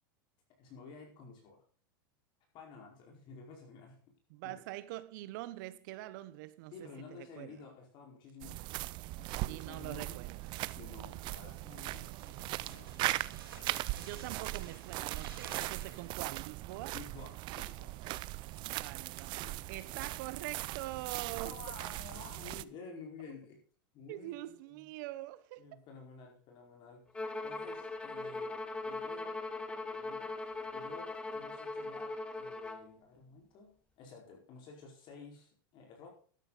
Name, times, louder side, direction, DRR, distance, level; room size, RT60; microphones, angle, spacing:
voice 1, 0.6-1.6 2.5-4.2 4.4-4.6 6.7-10.2 10.8-12.9 16.9-18.3 18.8-18.9 19.3-20.0 21.4-23.6 23.9-24.9 25.6-27.0 27.4-28.5 28.8-29.4 29.7-30.3 30.7-36.1, left 4 dB, 45° left, 4.8 m, -52 dB
voice 2, 4.3-7.5 9.5-10.6 14.0-16.9 18.6-19.4 19.7-21.6 24.1-25.6, right 17 dB, 60° right, 1.0 m, -44 dB
sound 1, 8.4-22.6, right 19 dB, 40° right, 0.5 m, -39 dB
sound 2, 11.9-16.4, right 7 dB, 85° right, 3.8 m, -51 dB
Bowed string instrument, 27.1-32.9, left 2 dB, 10° left, 1.0 m, -40 dB
12.5 x 10.0 x 4.1 m
supercardioid pair, 130°, 12 cm